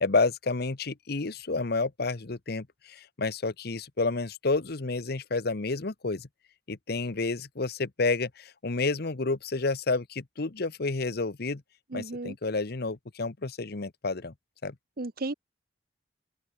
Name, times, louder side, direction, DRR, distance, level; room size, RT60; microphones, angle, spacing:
voice 1, 0.0-6.3 6.7-11.6 11.9-14.3 14.6-14.7, left 3 dB, 60° left, 1.0 m, -30 dB
voice 2, 11.9-12.3 15.0-15.3, right 2 dB, 55° right, 1.1 m, -34 dB
open air
head